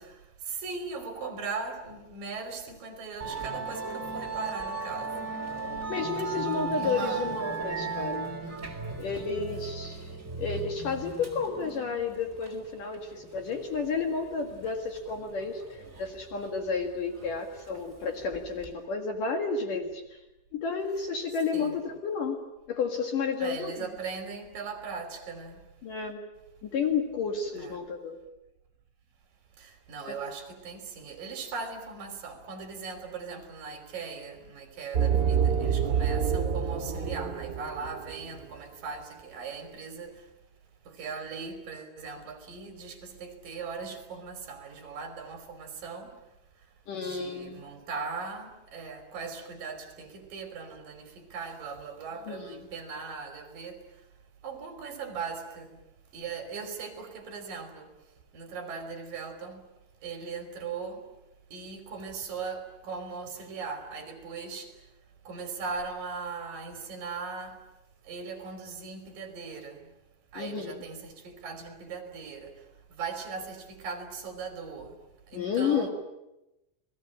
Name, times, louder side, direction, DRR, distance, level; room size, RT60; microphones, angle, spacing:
voice 1, 0.0-5.3 6.7-7.4 8.4-8.7 21.5-21.8 23.4-25.6 27.5-27.8 29.6-40.2 40.9-46.1 47.0-53.8 54.4-55.8 56.1-57.9 58.3-59.6 60.0-61.0 61.5-64.7 65.2-67.6 68.0-69.9 70.3-72.5 72.9-75.0 75.3-75.9, right 5 dB, 50° right, 4.6 m, -39 dB
Musical instrument, 3.2-18.7, right 4 dB, 20° right, 3.6 m, -37 dB
voice 2, 5.9-8.3 9.0-10.1 10.4-20.2 20.5-22.4 22.7-23.7 25.8-26.2 26.6-28.2 30.1-30.2 46.9-47.6 52.3-52.6 70.3-70.8 75.3-75.9, left 5 dB, 55° left, 3.0 m, -31 dB
sound 1, 34.9-38.4, right 7 dB, 80° right, 1.0 m, -27 dB
29.5 x 20.0 x 8.7 m
omnidirectional pair, 5.2 m